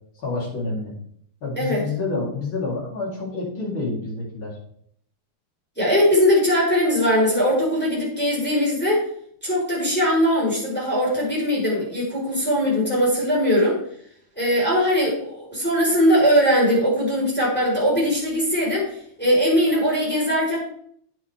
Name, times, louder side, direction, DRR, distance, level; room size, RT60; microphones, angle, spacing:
voice 1, 0.2-0.9 1.4-4.6, left 3 dB, 40° left, -5 dB, 4.5 m, -28 dB
voice 2, 5.8-9.1 9.4-13.8 14.4-20.6, equal, 5° left, -6 dB, 4.7 m, -20 dB
9.7 x 9.3 x 3.6 m, 0.65 s
omnidirectional pair, 3.3 m